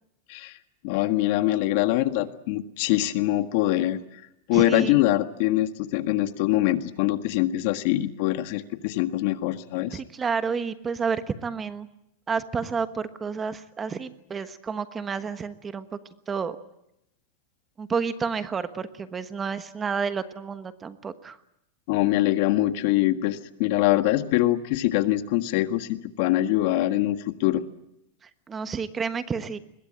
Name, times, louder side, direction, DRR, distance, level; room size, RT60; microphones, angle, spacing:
voice 1, 0.8-4.2 4.5-10.0 21.9-27.6, left 15 dB, 55° left, 9 dB, 1.7 m, -24 dB
voice 2, 4.5-5.0 9.9-11.9 12.3-15.8 16.3-16.6 17.8-21.4 28.2-29.6, right 5 dB, 15° right, 11 dB, 1.2 m, -30 dB
24.0 x 21.5 x 8.8 m, 0.81 s
supercardioid pair, 150°, 0 cm